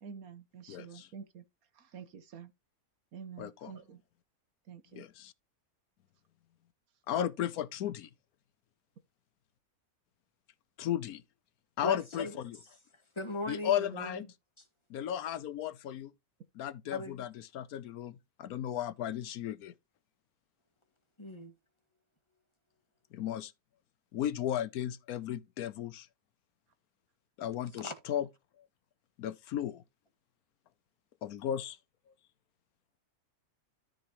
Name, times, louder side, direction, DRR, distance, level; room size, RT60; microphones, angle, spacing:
voice 1, 0.0-1.4 1.7-2.5 3.1-4.0 4.6-5.1, right 6 dB, 75° right, 1.5 m, -48 dB
voice 2, 0.7-1.1 3.4-3.7 4.9-5.3 7.1-8.1 10.8-11.2 11.8-12.6 13.5-14.3 14.9-16.1 16.6-19.7 23.1-23.5 24.1-26.1 27.4-28.3 29.2-29.8 31.2-31.8, left 10 dB, 80° left, 1.1 m, -35 dB
voice 3, 11.8-12.4 13.2-14.3 16.9-17.2 21.2-21.5 27.8-27.9, left 1 dB, 20° left, 1.7 m, -39 dB
13.0 x 5.2 x 3.0 m
omnidirectional pair, 1.6 m